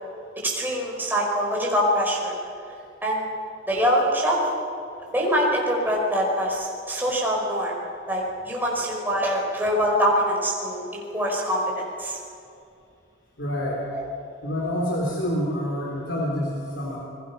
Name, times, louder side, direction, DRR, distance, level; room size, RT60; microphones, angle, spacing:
voice 1, 0.4-2.3 3.0-3.2 3.7-4.4 5.1-7.7 8.1-11.6 12.0-12.2 13.9-14.0, equal, 10° right, -3 dB, 4.9 m, -24 dB
voice 2, 13.4-13.8 14.4-17.0, equal, 65° left, -3 dB, 3.9 m, -27 dB
29.5 x 22.0 x 5.8 m, 2.5 s
head